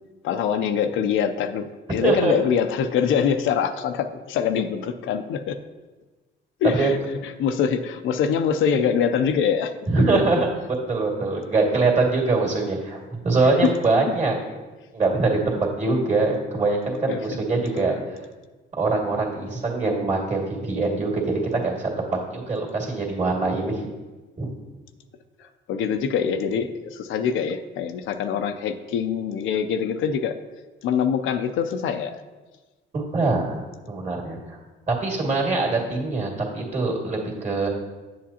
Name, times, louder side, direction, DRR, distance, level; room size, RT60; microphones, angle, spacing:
voice 1, 0.2-5.6 6.6-9.7 10.1-10.2 13.5-13.7 17.1-17.2 17.9-18.0 25.4-30.4 30.8-32.2, left 7 dB, 80° left, 8 dB, 0.5 m, -24 dB
voice 2, 2.0-2.3 6.7-6.9 9.9-10.5 10.9-14.3 14.9-18.0 18.7-21.9 22.3-23.8 24.4-24.5 32.9-33.6 33.9-34.6 34.9-37.7, right 3 dB, 35° right, -1 dB, 2.0 m, -23 dB
8.0 x 7.6 x 2.8 m, 1.2 s
cardioid pair, 90°, 20 cm